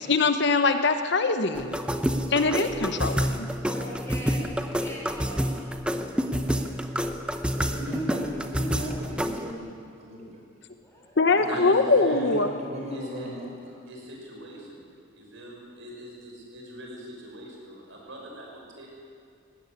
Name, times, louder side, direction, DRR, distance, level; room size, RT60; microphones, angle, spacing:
voice 1, 0.0-1.8 2.3-3.2 11.2-12.5, left 3 dB, 55° left, 8 dB, 1.0 m, -22 dB
sound 1, 1.5-9.5, equal, 5° right, 0.8 m, -28 dB
voice 2, 3.6-5.8 6.1-7.8 8.1-8.4 10.8-11.2, equal, 15° left, -3 dB, 5.5 m, -44 dB
voice 3, 7.5-10.4 11.4-13.5, equal, 30° right, -1 dB, 5.2 m, -36 dB
voice 4, 11.4-12.4 12.9-13.3 13.9-18.9, right 1 dB, 60° right, -1 dB, 6.2 m, -42 dB
19.5 x 17.0 x 9.9 m, 2.4 s
head